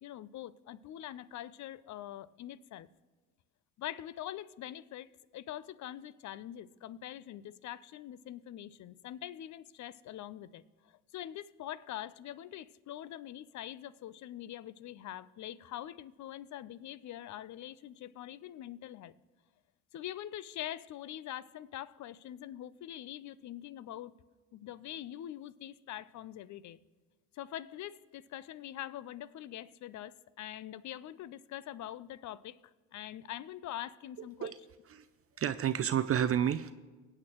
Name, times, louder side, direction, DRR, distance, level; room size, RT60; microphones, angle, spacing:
voice 1, 0.0-2.9 3.8-19.1 19.9-24.2 24.5-26.8 27.3-34.5, left 12 dB, 50° left, 19 dB, 0.6 m, -44 dB
voice 2, 35.4-36.7, right 9 dB, 40° right, 12 dB, 0.5 m, -30 dB
23.5 x 8.8 x 3.0 m, 1.3 s
hypercardioid pair, 60°, 38 cm